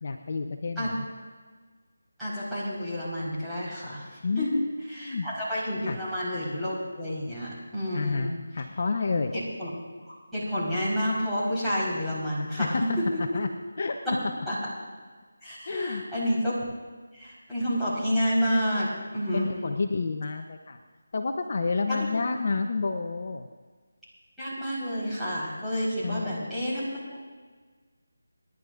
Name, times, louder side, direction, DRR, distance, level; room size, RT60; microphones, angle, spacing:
voice 1, 0.0-1.0 4.2-4.7 5.0-5.3 5.9-6.0 7.9-9.3 12.6-13.0 13.3-13.5 13.8-14.0 15.7-16.0 19.3-20.8 21.1-23.5 26.0-26.5, left 4 dB, 45° left, 5 dB, 0.8 m, -29 dB
voice 2, 2.2-4.1 4.4-4.5 4.9-8.3 9.3-9.7 10.1-13.2 14.0-14.2 14.5-14.6 15.4-16.5 17.1-19.5 21.9-22.0 24.4-27.2, equal, ahead, -14 dB, 4.5 m, -29 dB
29.0 x 11.0 x 2.6 m, 1.5 s
figure-of-eight pair, 165°, 0 cm